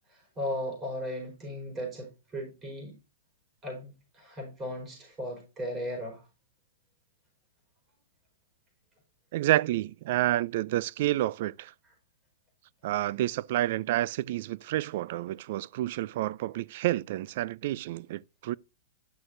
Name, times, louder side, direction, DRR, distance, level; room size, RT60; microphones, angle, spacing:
voice 1, 0.0-2.9 3.6-6.2, equal, 20° right, 4.6 m, -36 dB
voice 2, 9.3-11.7 12.8-18.6, right 15 dB, 55° right, 0.3 m, -29 dB
10.5 x 6.4 x 2.6 m
hypercardioid pair, 130°, 0 cm